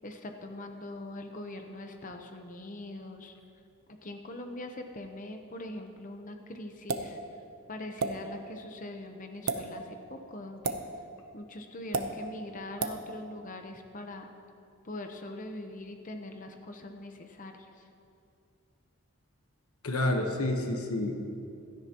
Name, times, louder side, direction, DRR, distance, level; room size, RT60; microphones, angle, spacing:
voice 1, 0.0-3.3 3.9-7.2 7.7-10.8 11.3-14.3 14.8-17.9, left 1 dB, 35° left, 5 dB, 0.8 m, -42 dB
sound 1, 6.9-7.1 8.0-8.1 9.3-9.6 10.6-10.8 11.9-12.1 12.8-13.0, right 4 dB, 90° right, 0.8 m, -30 dB
voice 2, 19.8-21.1, left 1 dB, 85° left, 4 dB, 1.1 m, -29 dB
16.0 x 13.0 x 2.9 m, 2.5 s
head